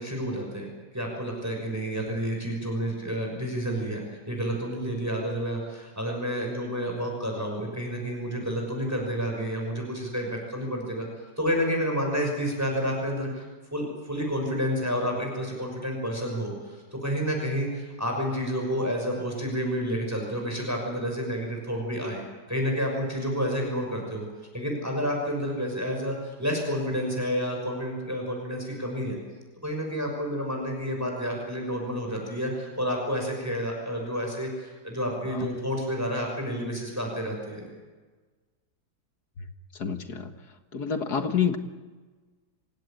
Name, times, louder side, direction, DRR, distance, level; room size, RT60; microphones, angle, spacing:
voice 1, 0.0-11.1 11.4-13.4 13.7-22.2 22.5-24.2 24.5-29.2 29.6-37.7, equal, 10° right, 1 dB, 6.1 m, -30 dB
voice 2, 39.8-40.3 40.7-41.6, left 7 dB, 65° left, 7 dB, 2.1 m, -28 dB
26.5 x 16.5 x 8.9 m, 1.3 s
omnidirectional pair, 1.9 m